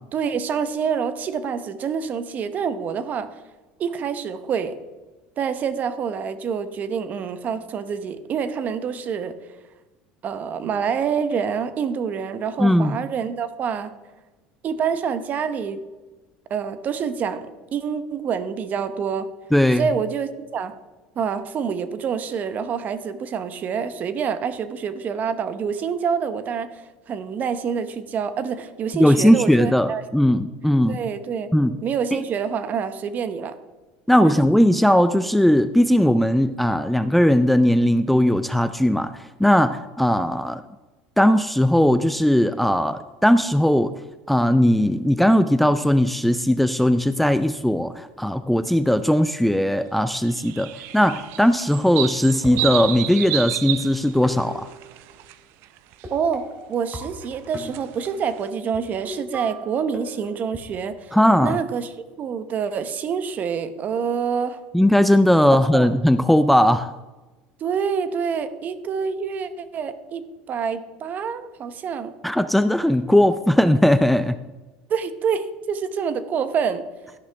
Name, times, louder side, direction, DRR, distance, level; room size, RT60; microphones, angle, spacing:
voice 1, 0.1-3.3 3.8-4.7 5.4-9.3 10.2-13.9 14.6-15.8 16.5-19.3 19.8-20.7 21.2-30.0 30.9-31.5 31.8-33.6 34.2-34.3 56.1-56.4 56.7-61.1 61.4-61.9 62.2-64.6 65.7-65.9 67.6-72.1 74.9-76.8, right 6 dB, 40° right, 12 dB, 0.9 m, -27 dB
voice 2, 12.6-13.0 19.5-19.9 29.0-31.0 31.5-31.8 34.1-40.6 41.2-43.9 44.3-54.7 61.1-61.6 64.7-66.9 72.2-74.4, equal, ahead, 11 dB, 0.4 m, -18 dB
sound 1, 50.2-55.3 55.6-56.0 57.2-58.5, right 13 dB, 65° right, 0.6 m, -30 dB
sound 2, 52.3-53.7 54.2-55.1 56.0-58.2 58.7-58.8 59.0-61.3, right 1 dB, 25° right, 2.9 m, -38 dB
13.0 x 11.0 x 3.4 m, 1.2 s
supercardioid pair, 105°, 4 cm